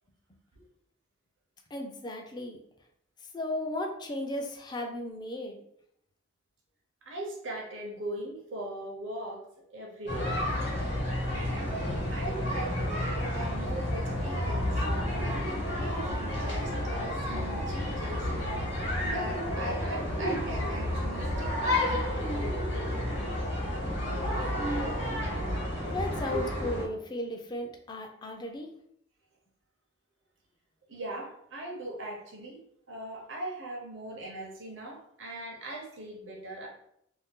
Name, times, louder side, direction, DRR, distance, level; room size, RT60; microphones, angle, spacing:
voice 1, 1.7-2.6 3.3-5.6 25.9-28.7, left 1 dB, 20° left, 3 dB, 0.3 m, -35 dB
voice 2, 7.0-9.4 9.7-10.3 11.3-11.8 12.1-14.9 15.1-18.3 19.0-22.0 30.9-32.6 32.9-36.7, right 1 dB, 70° right, -2 dB, 0.7 m, -40 dB
sound 1, 10.1-26.8, left 1 dB, 55° left, 1.0 m, -31 dB
2.6 x 2.2 x 3.5 m, 0.73 s
head